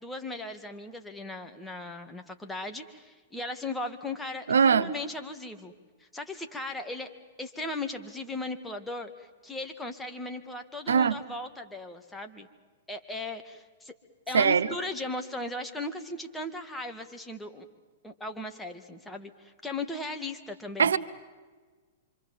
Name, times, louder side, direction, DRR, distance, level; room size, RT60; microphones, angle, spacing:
voice 1, 0.0-5.7 6.0-7.1 7.4-12.5 12.9-13.9 14.3-17.7 18.0-21.0, left 2 dB, 10° left, 2.1 m, -37 dB
voice 2, 4.5-4.9 10.9-11.2 14.3-14.7 20.8-21.0, right 6 dB, 80° right, 0.9 m, -21 dB
26.0 x 26.0 x 7.4 m
hypercardioid pair, 115°, 0 cm